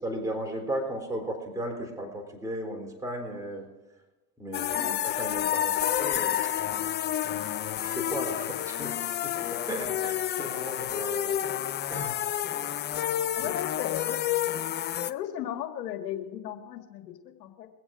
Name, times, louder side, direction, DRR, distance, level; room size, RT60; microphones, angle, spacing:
voice 1, 0.0-3.7 4.4-6.4 7.8-11.6 11.9-12.2 13.4-13.5, right 1 dB, 5° right, 0 dB, 3.7 m, -36 dB
sound 1, 4.5-15.1, left 11 dB, 25° left, 0.4 m, -29 dB
voice 2, 13.4-14.2 15.1-17.7, left 11 dB, 80° left, 5 dB, 2.0 m, -36 dB
23.0 x 8.0 x 4.9 m, 1.1 s
hypercardioid pair, 90°, 48 cm